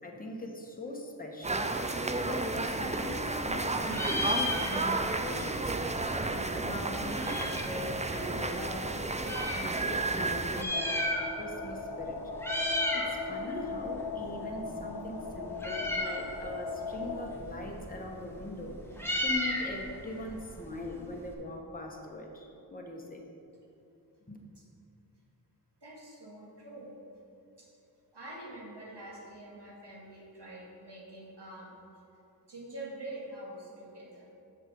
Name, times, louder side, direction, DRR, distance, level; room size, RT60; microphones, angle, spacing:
voice 1, 0.0-12.2 12.9-23.2 24.3-24.4, left 1 dB, 20° left, 0 dB, 1.1 m, -41 dB
sound 1, 1.4-10.6, right 2 dB, 15° right, 0.5 m, -32 dB
Meow, 2.7-3.6 3.8-5.1 5.4-5.5 5.7-7.8 8.4-9.6 10.4-11.6 11.9-12.1 12.4-13.1 13.5-21.3, left 1 dB, 5° left, 1.4 m, -35 dB
sound 2, 10.7-17.2, left 4 dB, 70° left, 0.8 m, -38 dB
voice 2, 25.8-26.9 27.6-27.7 28.1-31.7 32.5-34.3, right 1 dB, 90° right, -4 dB, 1.9 m, -45 dB
7.1 x 6.5 x 5.4 m, 2.8 s
wide cardioid pair, 45°, 40 cm